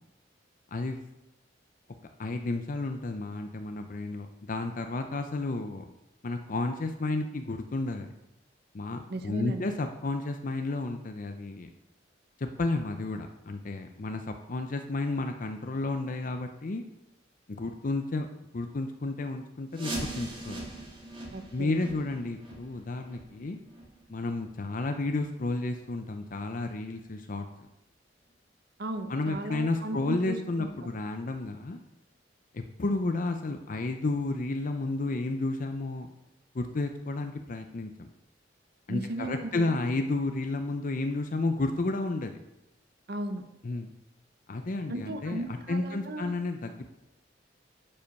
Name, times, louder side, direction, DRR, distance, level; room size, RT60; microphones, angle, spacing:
voice 1, 2.2-5.9 6.2-8.1 8.7-11.7 12.4-16.8 17.6-18.3 18.5-20.6 21.5-23.6 24.1-27.5 29.1-31.8 32.5-36.1 36.5-38.1 38.9-42.4 43.6-43.9 44.5-46.9, left 2 dB, 45° left, 6 dB, 0.6 m, -32 dB
voice 2, 9.1-9.7 21.3-21.8 28.8-30.9 38.9-39.8 43.1-43.4 44.9-46.3, right 1 dB, 60° right, 8 dB, 0.9 m, -36 dB
sound 1, 19.7-25.3 25.6-25.8 26.3-26.4 27.0-27.1 27.7-27.8, right 1 dB, 30° right, 2.2 m, -41 dB
11.5 x 5.5 x 5.3 m, 0.92 s
head